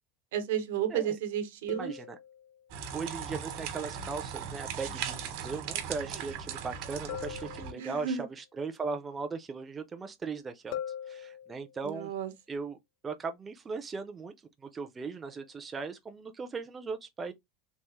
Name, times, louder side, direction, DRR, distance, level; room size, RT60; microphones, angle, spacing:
voice 1, 0.3-1.9 7.8-8.3 11.8-12.3, right 9 dB, 90° right, 0.9 m, -32 dB
sound 1, 1.7-2.8 7.1-8.3 10.7-12.0 15.3-15.5, left 10 dB, 65° left, 0.4 m, -42 dB
voice 2, 1.7-2.2 2.9-10.8 11.1-12.1 12.5-12.8 13.0-14.3 14.6-17.3, right 4 dB, 15° right, 0.4 m, -38 dB
sound 2, 2.7-7.7, right 8 dB, 60° right, 1.0 m, -38 dB
3.5 x 2.3 x 3.1 m
supercardioid pair, 155°, 0 cm